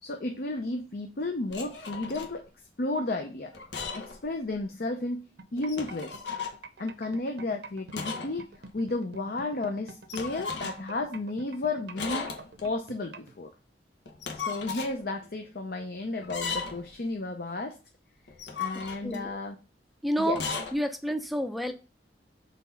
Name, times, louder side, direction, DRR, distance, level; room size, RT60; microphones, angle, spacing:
voice 1, 0.0-2.4 2.8-3.5 3.9-5.2 5.5-6.2 6.8-12.3 12.6-13.5 14.3-17.8 18.6-19.6 20.2-20.4, left 2 dB, 55° left, 4 dB, 0.6 m, -33 dB
sound 1, 1.5-2.3 3.5-4.2 4.5-4.6 5.6-6.6 7.9-8.4 8.7-8.8 10.1-10.9 12.0-12.7 14.1-14.9 16.2-16.9 18.3-19.3 20.3-20.7, left 5 dB, 80° left, 1.1 m, -36 dB
sound 2, 5.4-13.3, right 3 dB, 70° right, 0.7 m, -46 dB
voice 2, 18.7-19.4 20.0-20.4 20.7-21.7, equal, ahead, 7 dB, 0.5 m, -30 dB
4.2 x 4.1 x 5.6 m, 0.32 s
head